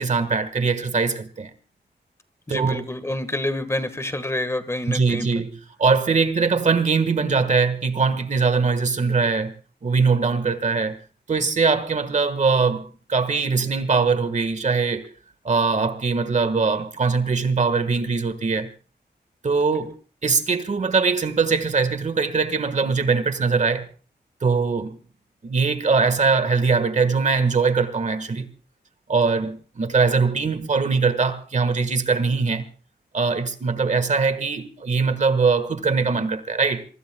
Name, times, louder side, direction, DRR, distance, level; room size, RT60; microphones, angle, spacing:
voice 1, 0.0-1.5 2.5-2.8 4.9-5.5 5.8-9.5 9.8-11.0 11.3-15.1 15.4-18.7 19.4-19.9 20.2-23.9 24.4-25.0 25.4-28.5 29.1-32.7 33.1-36.9, right 4 dB, 40° right, 1.5 m, -21 dB
voice 2, 2.5-5.3, left 1 dB, 15° left, 1.5 m, -27 dB
25.5 x 24.0 x 2.3 m
wide cardioid pair, 165°, 18 cm